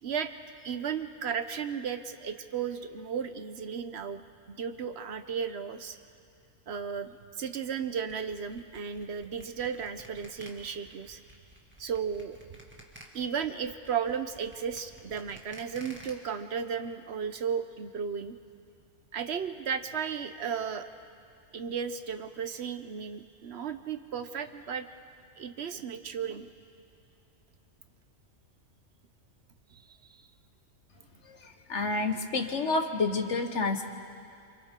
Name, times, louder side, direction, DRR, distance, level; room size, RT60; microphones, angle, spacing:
voice 1, 0.6-6.0 6.7-7.1 7.4-11.2 11.8-12.5 13.1-18.4 19.1-20.9 21.5-24.9 25.4-26.5 29.7-30.0, right 7 dB, 60° right, 9 dB, 1.0 m, -34 dB
sound 1, 8.1-16.1, right 1 dB, 10° right, 2.1 m, -52 dB
voice 2, 31.2-33.8, left 3 dB, 70° left, 5 dB, 1.6 m, -29 dB
29.0 x 26.5 x 3.7 m, 2.5 s
omnidirectional pair, 1.3 m